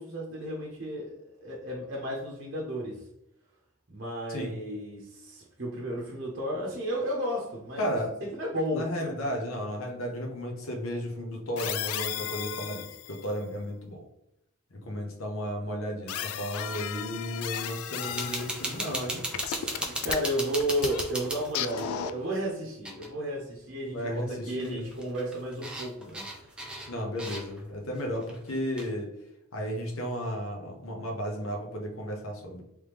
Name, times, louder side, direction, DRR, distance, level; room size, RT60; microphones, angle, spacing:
voice 1, 0.0-3.1 3.9-9.1 19.4-26.6, equal, 50° right, -3 dB, 0.7 m, -33 dB
voice 2, 7.8-8.1 8.7-14.0 14.7-19.2 23.9-24.8 26.9-29.1 29.5-32.6, equal, 70° left, 1 dB, 0.9 m, -34 dB
sound 1, 11.5-13.3 16.1-19.0 19.3-21.0 21.5-22.4, left 10 dB, 90° left, 0.3 m, -35 dB
sound 2, 18.0-21.9 22.8-23.1 23.4-23.5 24.5-27.7 28.1-28.9, right 1 dB, 5° right, 0.5 m, -36 dB
3.3 x 3.1 x 3.4 m, 0.83 s
head